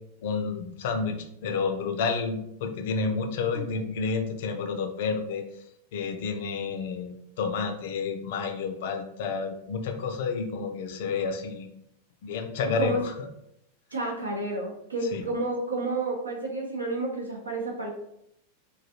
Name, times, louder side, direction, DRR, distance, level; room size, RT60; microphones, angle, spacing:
voice 1, 0.2-5.4 5.9-11.7 12.2-13.3 15.1-15.2, left 5 dB, 55° left, 6 dB, 0.4 m, -30 dB
voice 2, 12.6-13.0 13.9-17.9, right 2 dB, 80° right, -1 dB, 0.7 m, -30 dB
3.1 x 2.2 x 2.8 m, 0.76 s
figure-of-eight pair, 90°, 0 cm